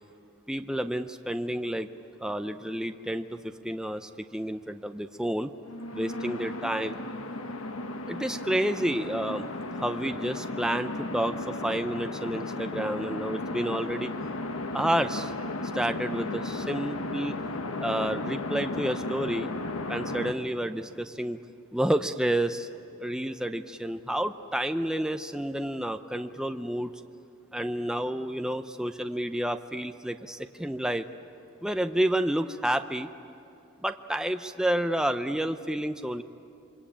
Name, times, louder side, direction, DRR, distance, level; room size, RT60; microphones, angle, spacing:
voice 1, 0.5-1.9 2.2-5.5 5.9-7.0 8.1-9.5 9.8-14.1 14.7-15.3 15.7-17.4 17.8-19.5 19.9-21.4 21.7-22.7 23.0-26.9 27.5-31.0 31.6-33.1 33.8-36.2, right 1 dB, 5° right, 7 dB, 0.6 m, -30 dB
sound 1, 5.6-20.3, left 2 dB, 85° left, 1.5 m, -35 dB
27.5 x 24.0 x 8.7 m, 2.7 s
head